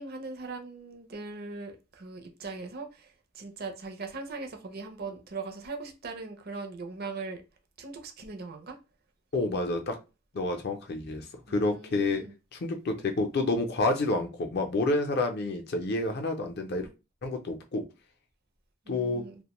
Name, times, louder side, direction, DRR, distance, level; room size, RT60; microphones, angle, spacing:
voice 1, 0.0-7.4 7.8-8.8 11.5-12.3 18.9-19.3, right 3 dB, 45° right, 0.5 m, -40 dB
voice 2, 9.3-10.0 10.3-12.2 12.5-16.9 17.2-17.8 18.9-19.3, left 2 dB, 50° left, 0.5 m, -29 dB
2.5 x 2.1 x 2.9 m
head